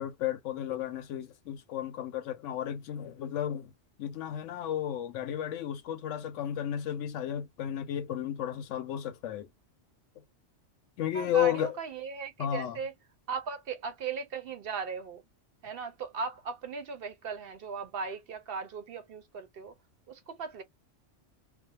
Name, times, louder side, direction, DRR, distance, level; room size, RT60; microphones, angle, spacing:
voice 1, 0.0-3.7 4.0-9.5 11.0-11.7 12.4-12.8, left 10 dB, 85° left, 0.9 m, -33 dB
voice 2, 11.1-12.9 13.3-15.2 15.6-19.7 20.1-20.6, right 5 dB, 60° right, 0.7 m, -37 dB
2.5 x 2.1 x 2.7 m
omnidirectional pair, 1.2 m